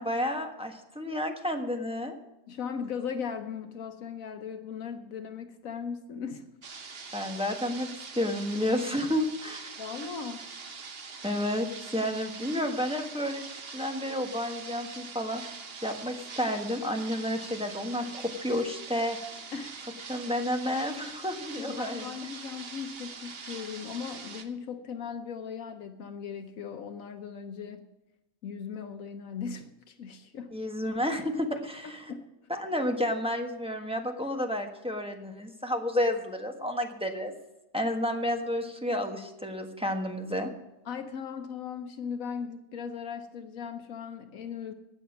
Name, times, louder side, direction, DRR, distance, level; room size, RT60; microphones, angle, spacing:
voice 1, 0.0-2.1 7.1-9.7 11.2-15.4 15.8-19.2 20.1-22.1 30.5-32.0 32.5-37.3 37.7-40.5, left 1 dB, 5° right, 3 dB, 1.2 m, -31 dB
voice 2, 2.5-6.5 9.8-10.4 19.5-19.8 21.6-27.9 28.4-30.5 31.8-32.2 40.8-44.7, left 6 dB, 80° left, 7 dB, 1.3 m, -38 dB
sound 1, 6.6-24.4, right 5 dB, 50° right, 1.2 m, -43 dB
17.5 x 7.0 x 6.1 m, 0.94 s
omnidirectional pair, 1.4 m